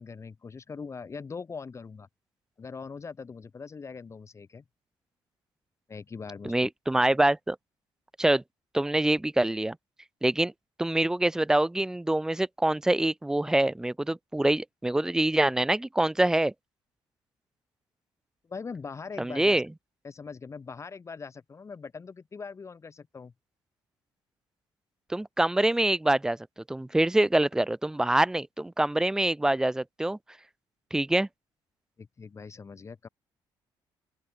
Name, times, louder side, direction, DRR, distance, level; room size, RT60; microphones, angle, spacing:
voice 1, 0.0-2.1 2.6-4.6 5.9-6.7 18.5-19.6 20.0-23.3 32.0-33.1, left 5 dB, 30° left, 2.0 m, -41 dB
voice 2, 6.5-7.6 8.2-8.4 8.7-9.8 10.2-10.5 10.8-16.5 19.2-19.6 25.1-26.4 26.7-30.2 30.9-31.3, right 1 dB, 5° right, 0.4 m, -25 dB
open air
cardioid pair, 95°, 9 cm